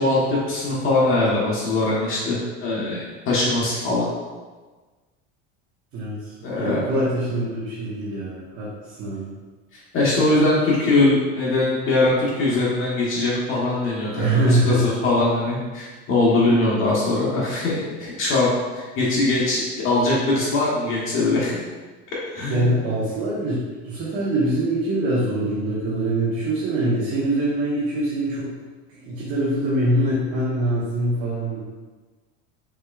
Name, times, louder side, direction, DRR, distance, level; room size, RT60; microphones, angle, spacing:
voice 1, 0.0-4.1 6.4-7.0 9.9-21.6 22.3-22.7, left 2 dB, 40° left, -6 dB, 1.3 m, -21 dB
voice 2, 5.9-9.3 14.1-14.9 22.5-28.5 28.9-31.6, right 1 dB, 45° right, -7 dB, 1.2 m, -24 dB
4.7 x 4.3 x 2.4 m, 1.3 s
supercardioid pair, 130°, 31 cm